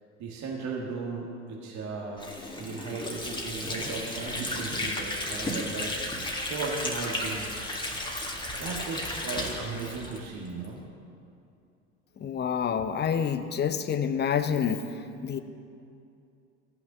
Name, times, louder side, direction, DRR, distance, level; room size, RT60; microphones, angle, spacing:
voice 1, 0.2-2.3 2.6-5.9 6.4-7.6 8.6-10.8, right 4 dB, 50° right, -2 dB, 1.8 m, -36 dB
Water / Sink (filling or washing), 2.2-10.7, left 1 dB, 10° left, 1.8 m, -34 dB
voice 2, 12.2-15.4, left 7 dB, 30° left, 11 dB, 0.7 m, -28 dB
14.5 x 5.9 x 6.6 m, 2.5 s
hypercardioid pair, 75°, 37 cm